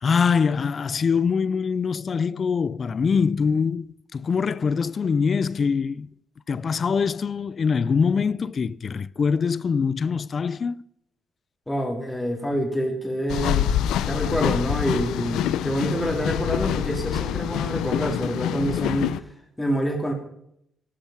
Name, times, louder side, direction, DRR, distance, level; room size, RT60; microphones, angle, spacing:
voice 1, 0.0-6.1 6.5-10.8, left 5 dB, 45° left, 0.5 m, -23 dB
voice 2, 11.7-13.7 14.0-19.1 19.6-20.1, equal, 10° left, 3.6 m, -26 dB
sound 1, 13.3-19.2, left 11 dB, 85° left, 0.6 m, -26 dB
14.0 x 12.5 x 5.9 m
cardioid pair, 90°, 0 cm